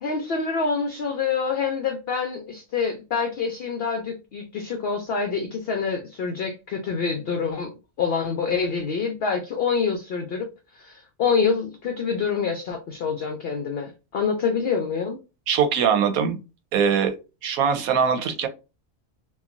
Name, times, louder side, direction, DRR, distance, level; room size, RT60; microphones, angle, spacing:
voice 1, 0.0-10.5 10.7-15.2, left 5 dB, 60° left, 0.6 m, -26 dB
voice 2, 15.5-16.4 16.7-17.2 17.4-18.5, right 7 dB, 90° right, 1.1 m, -21 dB
2.9 x 2.3 x 2.4 m
omnidirectional pair, 1.5 m